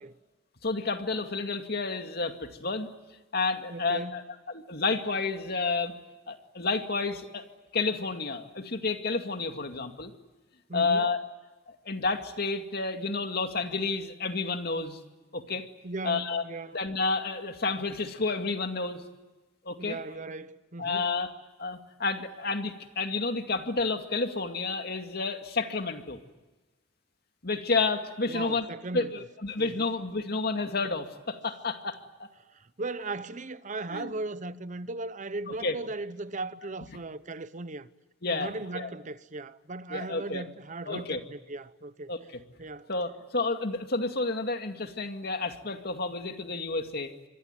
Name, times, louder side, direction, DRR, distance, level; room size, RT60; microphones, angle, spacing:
voice 1, 0.6-2.9 3.3-5.9 6.3-7.4 7.7-10.1 10.7-11.2 11.7-15.0 15.3-15.6 16.0-19.0 19.6-20.2 20.8-21.3 21.6-26.2 27.4-28.7 28.9-32.3 33.9-34.1 35.5-35.8 38.2-38.9 39.9-40.4 40.9-41.2 42.1-42.4 42.9-47.1, left 3 dB, 55° left, 2.3 m, -30 dB
voice 2, 3.7-4.2 10.7-11.1 15.8-16.8 19.8-21.1 28.3-29.1 29.6-29.8 32.5-37.9 38.3-42.1 42.6-42.9, right 2 dB, 40° right, 0.9 m, -37 dB
27.0 x 23.0 x 9.2 m
head